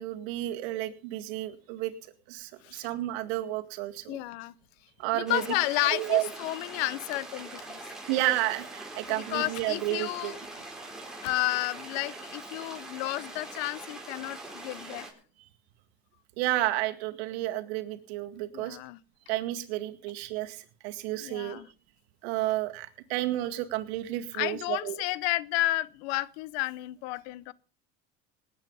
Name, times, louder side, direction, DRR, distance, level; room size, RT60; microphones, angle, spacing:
voice 1, 0.0-1.9 2.3-4.2 5.0-5.4 5.9-6.3 8.1-10.4 16.4-18.8 19.3-21.6 22.2-25.0, right 16 dB, 80° right, 2.0 m, -31 dB
voice 2, 4.1-4.5 5.1-7.8 9.1-10.4 11.2-15.1 18.5-19.0 21.2-21.7 24.3-27.5, left 18 dB, 80° left, 0.8 m, -32 dB
sound 1, 5.3-15.1, right 2 dB, ahead, 4.1 m, -43 dB
19.0 x 9.0 x 5.4 m
supercardioid pair, 110°, 31 cm